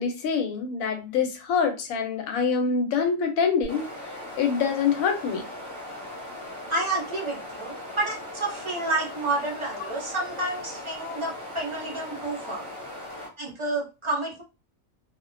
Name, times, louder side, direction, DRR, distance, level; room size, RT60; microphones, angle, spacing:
voice 1, 0.0-5.5, left 6 dB, 85° left, 5 dB, 1.0 m, -25 dB
sound 1, 3.6-13.3, left 1 dB, 30° left, 0.9 m, -39 dB
voice 2, 6.7-12.7 13.4-14.4, right 2 dB, 40° right, -2 dB, 0.4 m, -30 dB
2.3 x 2.1 x 2.5 m, 0.30 s
omnidirectional pair, 1.4 m